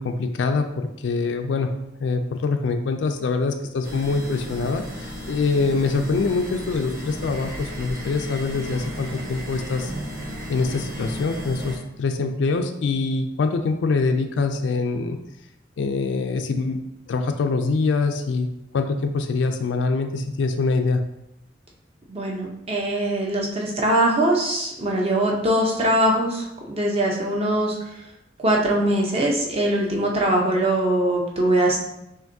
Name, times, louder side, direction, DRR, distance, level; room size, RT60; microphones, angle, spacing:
voice 1, 0.0-1.7 2.0-9.9 10.5-15.2 15.8-16.8 17.1-18.5 18.7-21.0, left 4 dB, 75° left, 6 dB, 0.3 m, -24 dB
sound 1, 3.8-11.8, equal, 55° right, 1.3 m, -34 dB
voice 2, 22.1-27.8 28.4-31.8, right 1 dB, 30° right, -1 dB, 0.8 m, -22 dB
5.7 x 2.5 x 2.7 m, 0.87 s
head